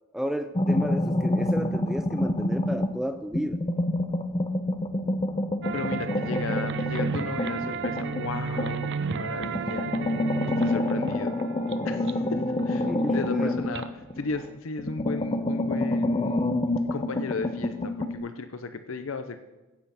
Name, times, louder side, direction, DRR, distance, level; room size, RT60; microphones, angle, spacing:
voice 1, 0.1-3.6 10.7-11.1 12.9-13.6, equal, ahead, 8 dB, 0.4 m, -32 dB
sound 1, 0.5-3.0 3.3-8.9 9.4-14.4 14.8-18.1, left 1 dB, 25° left, 0.7 m, -27 dB
sound 2, 5.6-14.6, right 5 dB, 60° right, 0.7 m, -34 dB
voice 2, 5.7-9.9 10.6-11.4 11.8-13.9 14.2-16.6 16.9-19.4, left 4 dB, 70° left, 10 dB, 0.7 m, -35 dB
15.5 x 7.9 x 5.8 m, 1.1 s
head